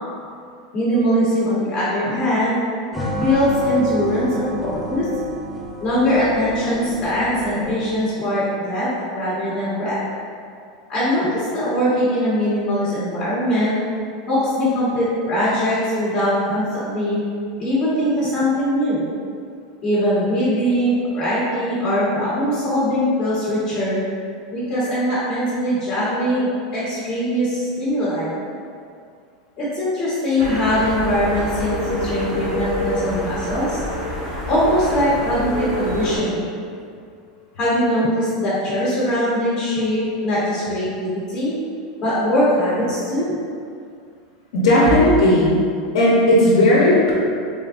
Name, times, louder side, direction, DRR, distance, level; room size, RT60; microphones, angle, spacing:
voice 1, 0.7-2.6 3.1-5.1 5.8-8.9 9.1-10.0 10.9-13.7 14.3-17.2 17.6-19.1 19.8-24.0 24.5-28.3 29.6-33.8 34.5-36.5 37.6-41.5 42.0-43.3, equal, 30° left, -12 dB, 1.4 m, -21 dB
sound 1, 2.9-8.1, left 1 dB, 5° right, 0.5 m, -30 dB
sound 2, 30.4-36.2, equal, 50° right, 1.3 m, -26 dB
voice 2, 44.5-45.6 45.9-47.1, left 1 dB, 80° left, -5 dB, 0.8 m, -14 dB
3.8 x 3.7 x 2.5 m, 2.3 s
supercardioid pair, 140°, 3 cm